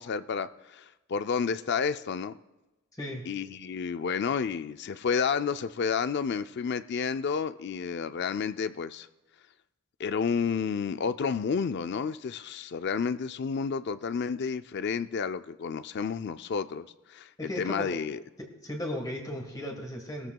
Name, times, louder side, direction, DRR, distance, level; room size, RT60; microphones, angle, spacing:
voice 1, 0.0-2.3 3.3-9.1 10.0-18.2, left 6 dB, 50° left, 12 dB, 0.4 m, -31 dB
voice 2, 17.4-17.9 18.4-20.3, left 1 dB, 15° left, 2 dB, 1.4 m, -36 dB
19.5 x 13.5 x 2.3 m, 1.0 s
head